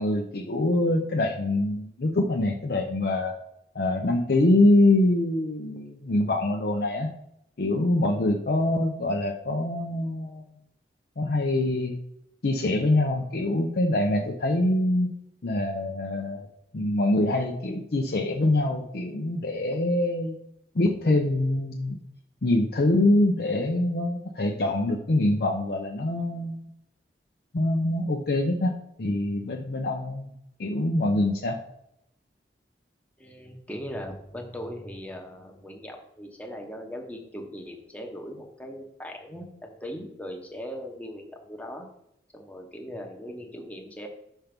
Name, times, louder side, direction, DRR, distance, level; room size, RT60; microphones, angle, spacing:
voice 1, 0.0-3.4 3.7-7.1 7.6-10.4 11.2-12.0 12.4-15.1 15.4-16.5 16.7-20.4 20.7-22.0 22.4-26.6 27.5-30.3 30.6-31.6, left 1 dB, 60° left, 1 dB, 0.6 m, -24 dB
voice 2, 33.2-41.9 42.3-44.1, equal, 10° left, 2 dB, 1.0 m, -39 dB
5.9 x 4.5 x 5.2 m, 0.78 s
head